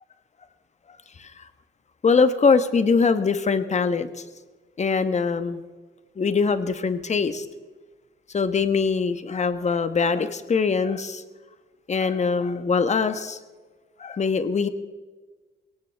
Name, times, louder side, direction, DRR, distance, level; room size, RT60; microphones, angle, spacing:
voice 1, 2.0-4.1 4.8-5.6 6.2-7.5 8.3-11.2 11.9-13.4 14.0-14.7, left 5 dB, 35° left, 11 dB, 1.2 m, -22 dB
22.0 x 17.5 x 3.5 m, 1.4 s
cardioid pair, 90°, 20 cm